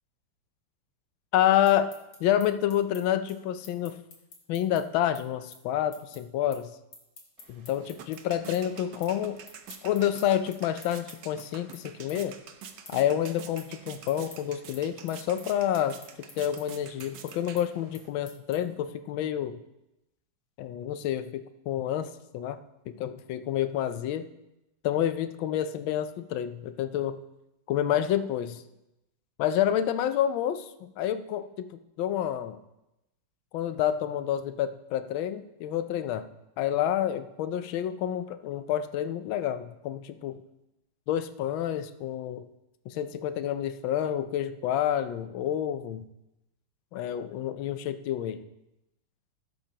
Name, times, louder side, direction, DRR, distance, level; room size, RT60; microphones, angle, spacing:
voice 1, 1.3-1.9 2.2-4.0 4.5-6.7 7.5-9.4 9.8-12.4 12.9-19.6 20.6-22.6 22.9-24.3 24.8-27.2 27.7-28.6 29.4-32.6 33.5-36.3 36.6-40.4 41.1-42.4 42.9-46.1 46.9-48.4, left 10 dB, 75° left, 11 dB, 1.3 m, -28 dB
sound 1, 1.7-8.2 8.5-9.2 9.4-18.8, left 3 dB, 55° left, 2.5 m, -51 dB
sound 2, 7.4-18.1, right 7 dB, 65° right, 1.3 m, -47 dB
16.5 x 8.0 x 2.9 m, 0.92 s
omnidirectional pair, 2.4 m